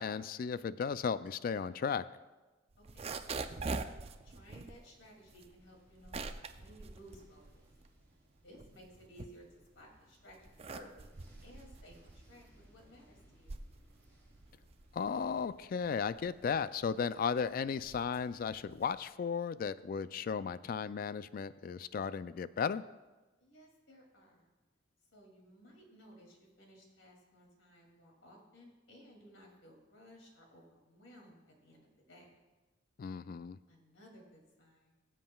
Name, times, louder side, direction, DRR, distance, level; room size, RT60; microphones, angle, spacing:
voice 1, 0.0-2.0 14.9-22.8 33.0-33.6, left 6 dB, 45° left, 15 dB, 0.3 m, -35 dB
sound 1, 2.7-8.0 8.4-9.8 10.3-19.1, right 3 dB, 30° right, 0.4 m, -45 dB
voice 2, 2.8-3.6 4.2-7.6 8.4-9.5 9.7-11.1 11.4-13.6 23.4-24.5 25.1-32.4 33.7-34.9, equal, 80° left, 0 dB, 2.6 m, -58 dB
sound 2, 2.9-17.2, equal, 10° left, 3.3 m, -67 dB
20.5 x 7.4 x 2.3 m, 1.2 s
head